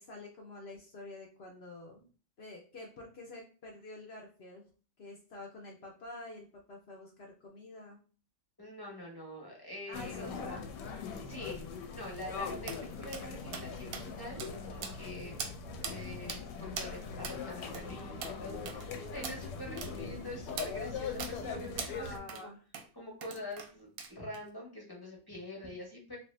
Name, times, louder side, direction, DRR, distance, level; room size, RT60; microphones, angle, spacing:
voice 1, 0.0-2.1 2.4-4.6 5.0-8.0 9.9-10.7 19.9-20.2 21.9-22.6, left 2 dB, 65° left, 0 dB, 0.6 m, -48 dB
voice 2, 8.6-10.4 11.3-11.6 11.9-15.4 15.8-22.5 22.9-26.2, left 1 dB, 20° left, -2 dB, 0.7 m, -45 dB
sound 1, 9.9-22.2, left 5 dB, 85° left, 1.2 m, -41 dB
sound 2, 12.7-12.8 13.1-13.2 13.5-13.7 13.9-14.0 14.4-14.5 14.8-15.1 15.4-15.5 15.8-16.0 16.3-16.4 16.8-16.9 17.2-17.4 17.7-17.9 18.2-18.3 18.7-18.9 19.2-19.4 19.8-19.9 20.6-20.7 21.2-21.3 21.8-21.9 22.3-22.4 22.7-22.9 23.2-23.7 24.0-24.4, right 6 dB, 70° right, 0.9 m, -40 dB
2.9 x 2.6 x 3.2 m, 0.38 s
omnidirectional pair, 1.8 m